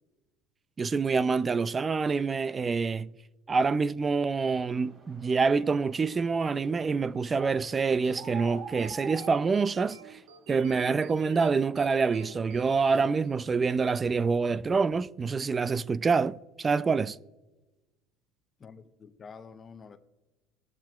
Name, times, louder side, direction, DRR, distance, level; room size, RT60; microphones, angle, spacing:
voice 1, 0.8-3.1 3.5-10.2 10.5-17.2, right 4 dB, 25° right, 0.4 m, -26 dB
sound 1, 4.7-10.3, right 5 dB, 40° right, 3.8 m, -46 dB
sound 2, 8.0-13.8, right 7 dB, 75° right, 1.1 m, -52 dB
voice 2, 18.6-20.0, left 5 dB, 30° left, 0.8 m, -48 dB
21.0 x 7.4 x 2.3 m
supercardioid pair, 110°, 0 cm